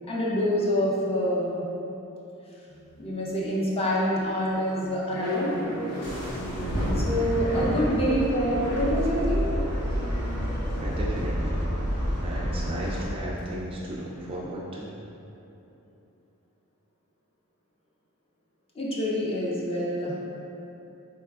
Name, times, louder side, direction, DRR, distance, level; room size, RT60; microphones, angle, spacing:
voice 1, 0.1-1.6 3.0-5.6 6.3-9.5 18.7-20.2, equal, 25° left, -5 dB, 0.6 m, -27 dB
sound 1, 2.7-3.4 3.8-14.4, left 1 dB, 85° left, 0.8 m, -39 dB
sound 2, 6.0-13.1, equal, 60° left, 1.0 m, -29 dB
voice 2, 10.8-11.6 12.2-14.9, right 1 dB, 25° right, -4 dB, 0.3 m, -35 dB
4.0 x 3.4 x 2.3 m, 2.9 s
head